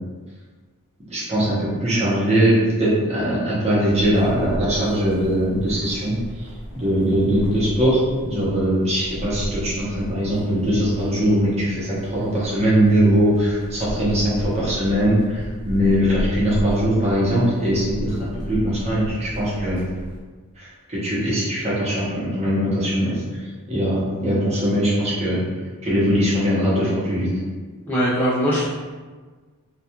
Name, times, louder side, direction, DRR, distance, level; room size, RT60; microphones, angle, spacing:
voice 1, 1.1-19.8 20.6-25.4 25.8-27.3, equal, 30° right, -8 dB, 0.8 m, -21 dB
sound 1, 3.9-20.2, equal, 80° left, 0.5 m, -34 dB
voice 2, 27.9-28.7, equal, 5° left, -9 dB, 0.3 m, -20 dB
2.3 x 2.3 x 2.8 m, 1.4 s
head